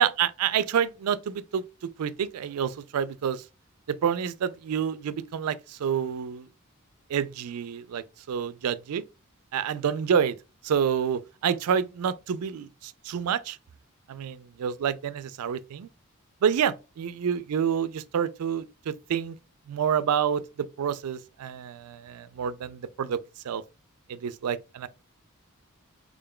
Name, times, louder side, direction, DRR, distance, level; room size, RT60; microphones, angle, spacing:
voice 1, 0.0-1.6 2.0-3.4 3.9-6.5 7.1-9.0 9.5-10.3 10.6-13.6 14.1-15.9 16.4-19.4 19.7-23.6 24.1-24.9, right 8 dB, 90° right, 0.4 m, -28 dB
3.7 x 3.6 x 2.2 m
head